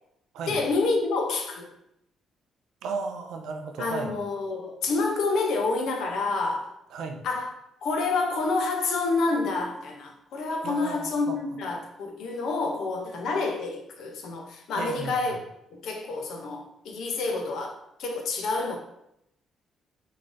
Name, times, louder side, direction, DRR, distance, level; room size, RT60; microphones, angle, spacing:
voice 1, 0.5-1.7 3.8-6.7 7.2-7.5 7.8-15.4 15.8-18.8, left 3 dB, 75° left, 0.6 m, -28 dB
voice 2, 2.8-4.1 6.9-7.2 10.6-11.4 14.8-15.3, right 4 dB, 85° right, 0.4 m, -34 dB
3.8 x 3.2 x 2.5 m
cardioid pair, 90°, 0 cm